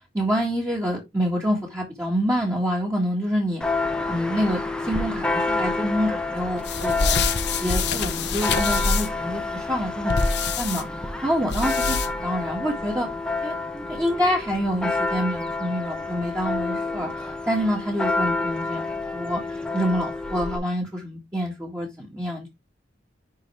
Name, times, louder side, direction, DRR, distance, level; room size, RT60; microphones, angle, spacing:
voice 1, 0.1-3.6 4.1-7.2 7.6-10.8 11.2-13.1 13.4-19.4 19.7-22.5, equal, 15° right, -4 dB, 1.9 m, -27 dB
Church bell, 3.6-20.6, left 3 dB, 5° left, 0.9 m, -29 dB
sound 1, 6.6-9.2 10.1-10.8 11.5-12.3, left 4 dB, 65° left, 1.0 m, -25 dB
10.5 x 3.9 x 3.4 m, 0.20 s
head